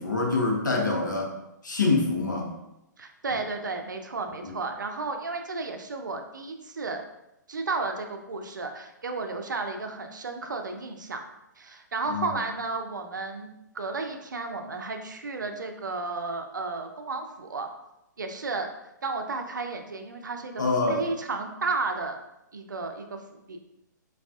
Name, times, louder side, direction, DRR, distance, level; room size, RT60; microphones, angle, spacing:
voice 1, 0.0-1.3 1.6-2.5 4.4-4.5 12.1-12.3 20.6-21.0, left 3 dB, 75° left, 0 dB, 0.7 m, -25 dB
voice 2, 3.0-7.0 7.5-11.2 11.6-13.5 13.7-17.7 18.2-18.7 19.0-20.6 20.9-22.2 22.5-23.2 23.5-23.6, right 3 dB, 75° right, 5 dB, 0.4 m, -33 dB
3.4 x 2.3 x 2.3 m, 0.88 s
figure-of-eight pair, 120°, 10 cm